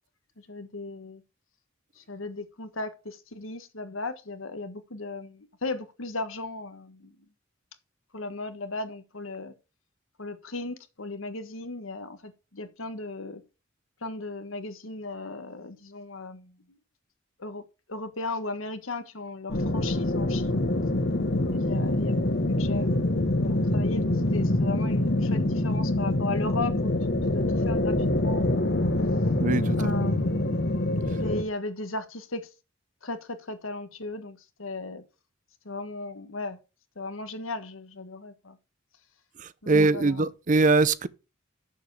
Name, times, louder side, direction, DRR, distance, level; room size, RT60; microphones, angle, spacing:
voice 1, 0.4-1.2 2.0-7.1 8.1-9.5 10.2-13.4 14.0-16.8 17.4-17.6 17.9-20.7 21.4-22.9 23.4-27.0 27.3-28.7 29.8-30.6 31.2-32.5 33.0-35.0 35.6-36.6 37.0-38.6 39.6-40.2, left 2 dB, 80° left, 1.5 m, -36 dB
sound 1, 19.5-31.4, left 1 dB, 55° left, 1.3 m, -25 dB
voice 2, 29.4-30.1 39.4-41.1, right 3 dB, 40° right, 0.6 m, -23 dB
7.3 x 7.0 x 6.9 m
head